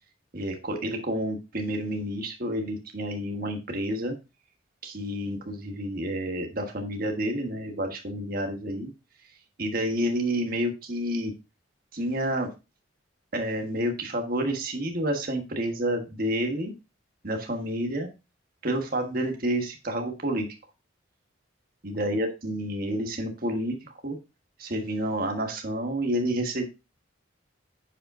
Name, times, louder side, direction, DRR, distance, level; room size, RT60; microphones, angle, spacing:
voice 1, 0.3-4.1 4.8-8.9 9.6-11.3 11.9-12.5 13.3-16.7 17.2-18.1 18.6-20.5 21.8-24.2 24.6-26.6, right 1 dB, 45° right, 3 dB, 1.4 m, -29 dB
9.7 x 5.0 x 2.6 m, 0.28 s
head